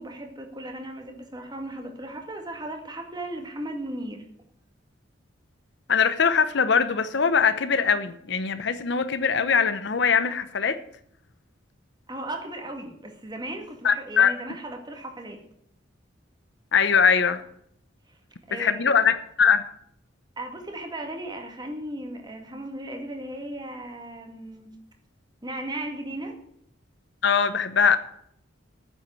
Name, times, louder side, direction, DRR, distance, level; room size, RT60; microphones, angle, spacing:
voice 1, 0.0-4.2 12.1-15.4 18.1-18.2 18.5-18.9 20.4-24.7 25.4-26.4, right 1 dB, 20° right, 3 dB, 2.1 m, -36 dB
voice 2, 5.9-10.8 13.8-14.3 16.7-17.4 18.5-19.6 27.2-28.0, left 6 dB, 65° left, 12 dB, 0.8 m, -21 dB
9.3 x 7.8 x 8.9 m, 0.69 s
head